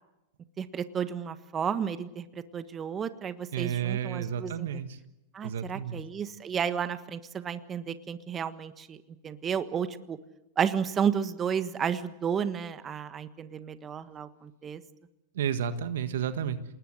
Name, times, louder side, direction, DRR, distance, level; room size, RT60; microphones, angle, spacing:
voice 1, 0.6-2.2 2.5-4.7 5.3-9.0 9.2-10.2 10.6-14.8, right 7 dB, 25° right, 11 dB, 1.5 m, -32 dB
voice 2, 3.5-5.0 5.4-6.0 15.3-16.6, right 8 dB, 70° right, 11 dB, 1.6 m, -31 dB
27.5 x 20.0 x 7.9 m, 0.92 s
hypercardioid pair, 100°, 0 cm